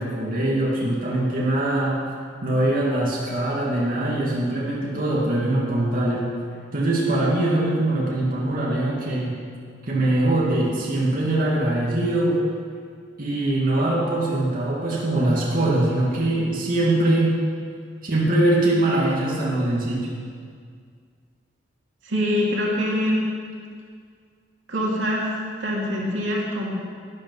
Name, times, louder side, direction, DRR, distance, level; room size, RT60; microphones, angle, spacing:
voice 1, 0.0-2.0 2.4-6.3 6.7-9.4 9.8-12.4 13.2-17.5 18.0-20.2, right 1 dB, 50° right, -4 dB, 1.9 m, -22 dB
voice 2, 22.0-23.3 24.7-25.3 25.6-26.7, equal, 90° right, -3 dB, 2.5 m, -24 dB
12.0 x 10.0 x 5.4 m, 2.1 s
head